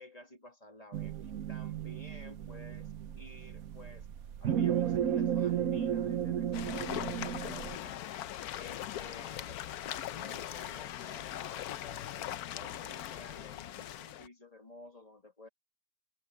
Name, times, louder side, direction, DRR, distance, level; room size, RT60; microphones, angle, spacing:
voice 1, 0.0-4.1 4.4-8.1 8.5-15.5, left 1 dB, 25° left, 2.7 m, -53 dB
sound 1, 0.9-7.8, right 9 dB, 70° right, 1.3 m, -34 dB
sound 2, 6.5-14.3, left 12 dB, 80° left, 1.2 m, -40 dB
omnidirectional pair, 1.6 m